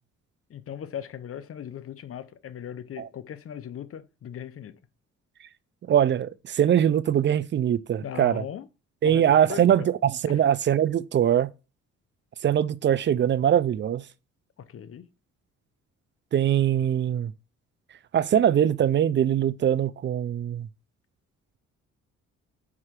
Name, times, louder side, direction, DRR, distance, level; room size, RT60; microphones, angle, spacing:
voice 1, 0.5-4.8 8.0-8.7 9.0-9.9 10.3-10.4 14.6-15.1, left 9 dB, 50° left, 0.7 m, -38 dB
voice 2, 5.9-8.4 9.0-11.5 12.4-14.0 16.3-17.3 18.1-20.7, right 10 dB, 40° right, 0.4 m, -22 dB
4.9 x 4.7 x 4.4 m
cardioid pair, 90°, 30 cm